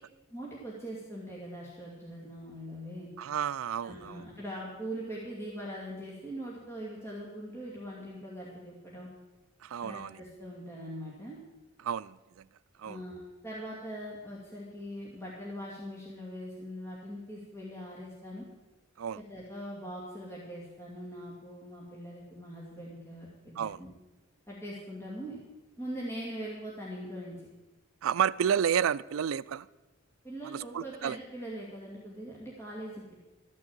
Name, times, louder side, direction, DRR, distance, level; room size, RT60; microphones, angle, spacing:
voice 1, 0.3-3.1 3.8-9.1 9.8-11.4 12.8-18.5 19.1-23.9 24.5-25.4 25.8-27.5 30.2-33.2, equal, 15° left, -5 dB, 2.3 m, -42 dB
voice 2, 3.2-4.2 9.6-10.2 11.8-12.4 12.8-13.0 19.0-19.2 23.6-23.8 28.0-29.7 30.4-31.2, right 8 dB, 80° right, 19 dB, 0.4 m, -31 dB
13.5 x 6.4 x 8.8 m, 1.1 s
head